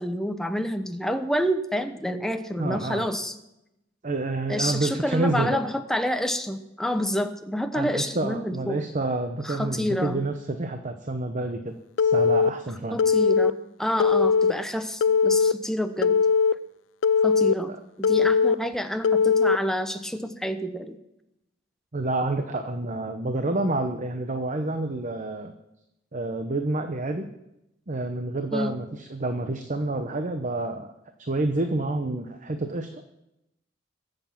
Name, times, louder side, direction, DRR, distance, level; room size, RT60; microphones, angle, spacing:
voice 1, 0.0-3.3 4.5-8.8 9.4-10.2 12.9-16.2 17.2-21.0 28.5-28.7, equal, ahead, 7 dB, 0.9 m, -28 dB
voice 2, 2.6-3.1 4.0-5.6 7.7-13.0 17.7-17.8 21.9-25.5 26.1-27.3 27.9-30.9 31.2-33.0, right 2 dB, 40° right, 7 dB, 0.9 m, -28 dB
Telephone, 12.0-12.5 13.0-13.5 14.0-14.5 15.0-15.5 16.0-16.5 17.0-17.5 18.0-18.5 19.0-19.6, left 5 dB, 85° left, 0.4 m, -20 dB
22.0 x 7.9 x 5.9 m, 0.87 s
head